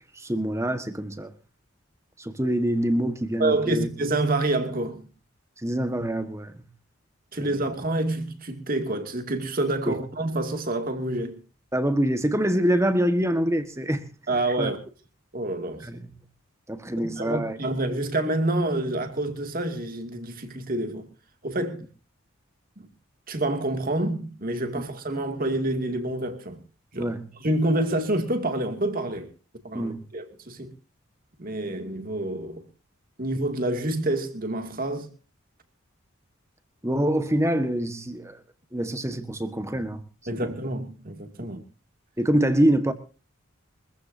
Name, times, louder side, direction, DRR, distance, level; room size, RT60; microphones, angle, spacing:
voice 1, 0.1-1.3 2.2-3.9 5.6-6.7 7.4-7.5 9.9-10.0 11.7-14.0 14.6-14.7 15.8-16.1 16.7-17.6 24.8-24.9 27.0-27.3 29.7-30.1 36.8-38.4 38.7-40.0 40.3-40.5 42.2-42.9, right 1 dB, 15° right, 1.5 m, -25 dB
voice 2, 3.4-5.1 7.3-11.4 14.3-14.8 15.3-15.9 17.0-21.1 21.4-21.8 22.8-22.9 23.3-26.6 26.9-27.1 27.4-29.3 29.6-30.7 31.4-32.6 33.2-35.1 40.3-41.6, right 2 dB, 45° right, 2.5 m, -27 dB
24.0 x 15.0 x 2.7 m
head